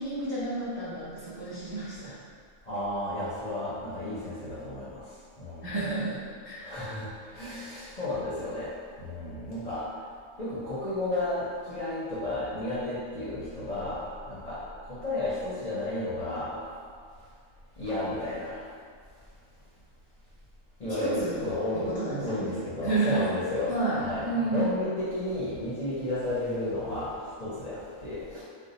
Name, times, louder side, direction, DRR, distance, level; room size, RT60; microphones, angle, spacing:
voice 1, 0.0-2.2 5.6-6.8 21.0-21.4 21.7-22.5 22.8-23.2 23.7-24.8, right 2 dB, 35° right, -10 dB, 0.4 m, -30 dB
voice 2, 2.7-5.0 5.4-5.7 6.6-8.7 9.0-9.9 10.4-16.6 17.8-18.6 20.8-28.4, left 1 dB, 45° left, -10 dB, 0.6 m, -33 dB
2.6 x 2.2 x 4.0 m, 2.1 s
omnidirectional pair, 1.4 m